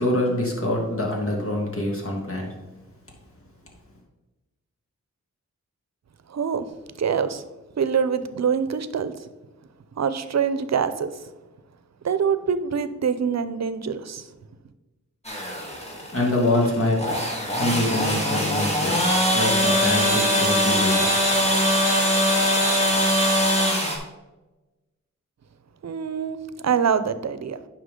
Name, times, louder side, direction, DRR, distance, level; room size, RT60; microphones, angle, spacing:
voice 1, 0.0-2.5 16.1-17.0 17.5-19.0 19.3-21.1, left 1 dB, 45° left, 2.6 m, -25 dB
voice 2, 6.3-6.7 7.0-7.4 7.8-9.1 10.0-11.2 12.0-14.3 25.8-27.6, right 7 dB, 60° right, 0.7 m, -25 dB
sound 1, 15.2-24.0, equal, 20° left, 2.4 m, -22 dB
9.7 x 5.8 x 3.8 m
cardioid pair, 60°, 30 cm